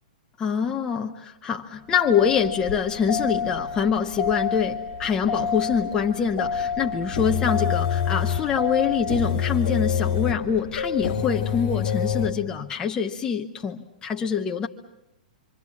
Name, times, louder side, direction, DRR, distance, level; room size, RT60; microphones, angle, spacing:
voice 1, 0.4-14.7, left 7 dB, 15° left, 0.9 m, -25 dB
sound 1, 2.0-12.3, left 7 dB, 45° left, 2.5 m, -27 dB
28.5 x 24.5 x 7.2 m
hypercardioid pair, 150°, 5 cm